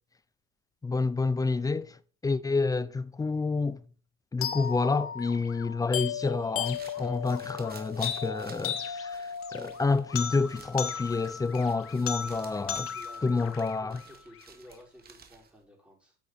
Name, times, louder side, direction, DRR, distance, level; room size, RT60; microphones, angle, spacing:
voice 1, 0.8-2.0 2.2-3.8 4.3-12.9 13.2-14.0, left 4 dB, 10° left, 0.5 m, -29 dB
sound 1, 4.4-14.4, left 8 dB, 45° left, 1.2 m, -36 dB
sound 2, 6.4-15.6, right 6 dB, 30° right, 1.9 m, -53 dB
voice 2, 12.9-13.5 13.8-16.2, equal, 5° right, 5.5 m, -53 dB
8.4 x 8.0 x 4.3 m
supercardioid pair, 95°, 30 cm